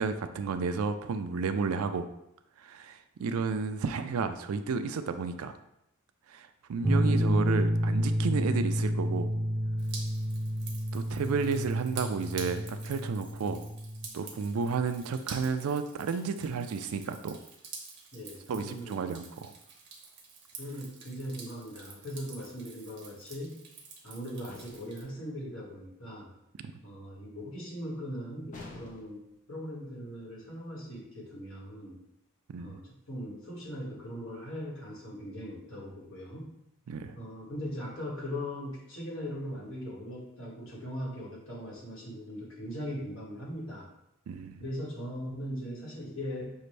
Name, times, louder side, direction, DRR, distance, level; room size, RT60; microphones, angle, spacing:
voice 1, 0.0-2.1 2.6-5.5 6.3-9.3 10.9-13.6 14.1-17.4 18.5-19.5 32.5-32.8 36.9-37.1 44.3-44.6, right 5 dB, 85° right, 10 dB, 0.4 m, -32 dB
sound 1, 6.8-14.1, equal, 10° right, 0.3 m, -30 dB
Drip, 9.8-25.0, right 5 dB, 55° right, 0.9 m, -48 dB
voice 2, 18.1-19.1 20.6-23.6 24.0-26.3 26.8-29.2 29.5-32.0 32.6-36.5 37.1-43.9 44.6-46.5, equal, 65° left, -5 dB, 1.8 m, -40 dB
sound 2, 24.5-25.0 28.5-29.3, left 2 dB, 40° left, 0.6 m, -48 dB
6.3 x 2.5 x 3.2 m, 0.82 s
head